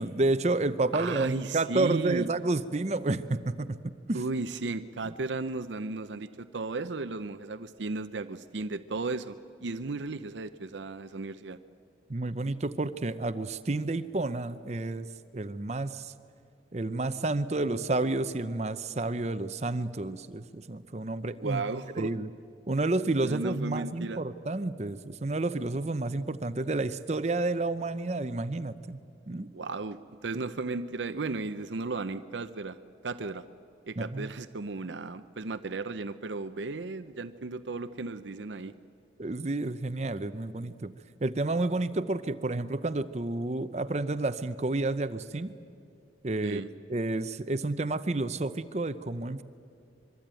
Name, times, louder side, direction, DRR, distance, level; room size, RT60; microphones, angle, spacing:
voice 1, 0.0-4.2 5.0-5.1 12.1-15.1 15.3-16.1 16.7-21.6 22.0-22.3 22.7-29.0 29.3-29.5 34.0-34.3 39.2-40.9 41.2-45.5 46.2-46.6 46.9-49.4, right 2 dB, 35° right, 12 dB, 0.6 m, -30 dB
voice 2, 0.9-2.3 4.1-11.6 21.4-22.1 23.2-24.2 29.5-32.8 33.0-33.4 33.9-38.7 46.4-46.7, right 3 dB, 80° right, 11 dB, 0.7 m, -35 dB
25.5 x 23.0 x 9.0 m, 2.4 s
head